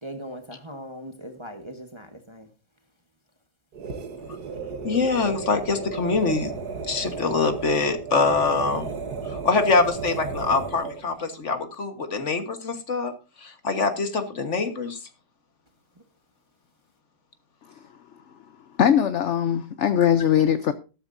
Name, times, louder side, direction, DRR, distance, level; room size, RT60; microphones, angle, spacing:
voice 1, 0.0-2.5, equal, 20° right, 1.2 m, -39 dB
sound 1, 3.7-11.1, right 5 dB, 65° right, 1.8 m, -34 dB
voice 2, 4.8-6.5 6.9-8.9 9.2-13.1 13.4-15.0, left 4 dB, 45° left, 1.6 m, -24 dB
voice 3, 18.8-20.7, left 9 dB, 60° left, 0.8 m, -20 dB
13.0 x 13.0 x 2.6 m
omnidirectional pair, 1.9 m